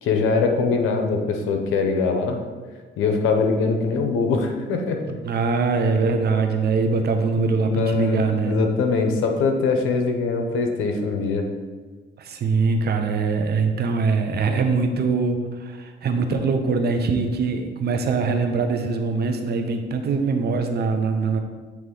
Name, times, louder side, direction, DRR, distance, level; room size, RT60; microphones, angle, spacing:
voice 1, 0.0-2.4 3.0-5.0 7.7-11.5, left 4 dB, 90° left, 4 dB, 0.8 m, -22 dB
voice 2, 5.2-8.6 12.2-21.4, right 4 dB, 55° right, 6 dB, 0.8 m, -22 dB
8.3 x 3.1 x 3.9 m, 1.4 s
cardioid pair, 90°, 20 cm